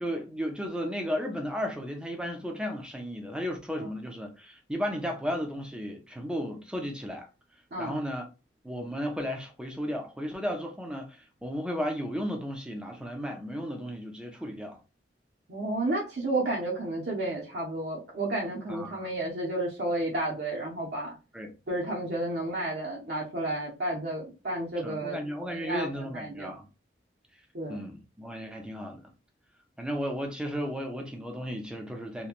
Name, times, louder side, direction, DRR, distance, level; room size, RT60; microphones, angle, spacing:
voice 1, 0.0-7.3 7.8-8.3 8.6-14.8 18.7-19.1 21.3-21.5 24.8-26.7 27.7-29.0 29.8-32.3, equal, 5° right, 0.5 m, -34 dB
voice 2, 15.5-21.2 21.7-25.2 25.5-26.5 27.5-27.8, right 2 dB, 60° right, 0.7 m, -31 dB
2.9 x 2.2 x 2.4 m
head